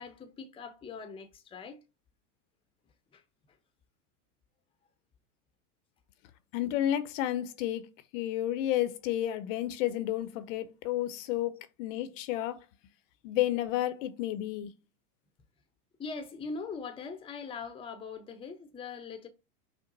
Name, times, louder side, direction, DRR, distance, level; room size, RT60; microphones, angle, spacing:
voice 1, 0.0-1.8 3.1-3.2 16.0-19.3, left 4 dB, 10° left, 0.7 m, -41 dB
voice 2, 6.5-12.6 13.2-14.7, left 13 dB, 55° left, 0.7 m, -31 dB
5.9 x 2.1 x 3.9 m
hypercardioid pair, 115°, 45 cm